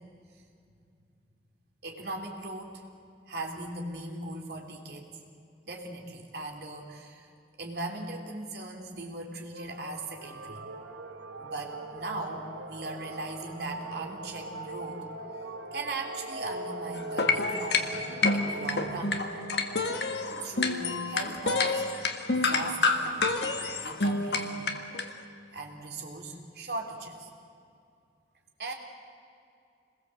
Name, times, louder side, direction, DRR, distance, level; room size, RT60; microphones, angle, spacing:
voice 1, 1.8-2.8 3.3-5.1 5.7-7.3 7.6-10.6 11.4-15.0 15.7-19.2 20.4-22.0 22.3-23.3 23.8-24.6 25.5-27.3 28.6-28.7, right 2 dB, 60° right, 2 dB, 3.4 m, -38 dB
sound 1, 9.5-21.4, right 2 dB, 90° right, 1.8 m, -41 dB
sound 2, 17.0-25.1, left 3 dB, 65° left, 1.8 m, -28 dB
27.5 x 21.0 x 7.8 m, 2.4 s
head